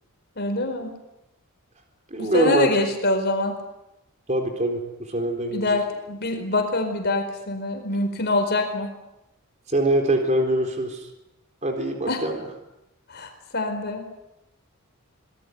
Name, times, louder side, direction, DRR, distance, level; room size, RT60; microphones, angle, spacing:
voice 1, 0.4-0.9 2.1-3.5 5.5-8.9 12.1-12.2 13.1-14.1, left 2 dB, 45° left, 5 dB, 4.6 m, -25 dB
voice 2, 2.1-2.7 4.3-4.8 5.1-5.7 9.7-11.0 11.6-12.4, right 1 dB, 30° right, 4 dB, 3.9 m, -23 dB
26.0 x 20.0 x 9.6 m, 0.91 s
head